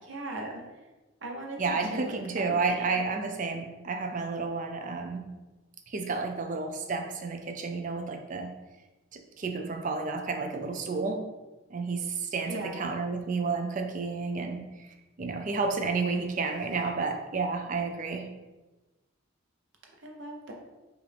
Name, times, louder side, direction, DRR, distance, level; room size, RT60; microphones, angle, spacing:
voice 1, 0.1-0.6 1.2-1.6 1.9-2.6 12.4-12.9 20.0-20.5, right 1 dB, 60° right, 1 dB, 0.7 m, -38 dB
voice 2, 1.6-5.3 5.9-8.5 9.1-11.2 11.7-14.6 15.2-18.3, right 4 dB, 40° right, 5 dB, 0.4 m, -31 dB
4.8 x 2.5 x 3.3 m, 1.1 s
head